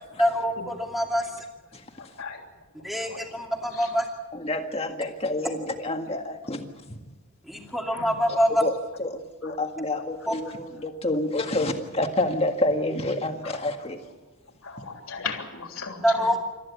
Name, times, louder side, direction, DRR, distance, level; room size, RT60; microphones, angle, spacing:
voice 1, 0.2-1.4 2.8-4.0 7.4-8.6 10.3-10.4 16.0-16.4, equal, ahead, 1 dB, 2.5 m, -25 dB
voice 2, 1.9-2.4 2.8-3.9 7.8-8.2 9.4-9.6 9.9-10.0 10.4-10.9 11.6-11.7 13.4-13.6 14.5-16.4, left 5 dB, 75° left, 3 dB, 3.4 m, -39 dB
voice 3, 4.3-7.0 8.3-8.7 9.0-14.0, left 2 dB, 30° left, 4 dB, 1.9 m, -28 dB
28.0 x 14.0 x 8.5 m, 1.2 s
head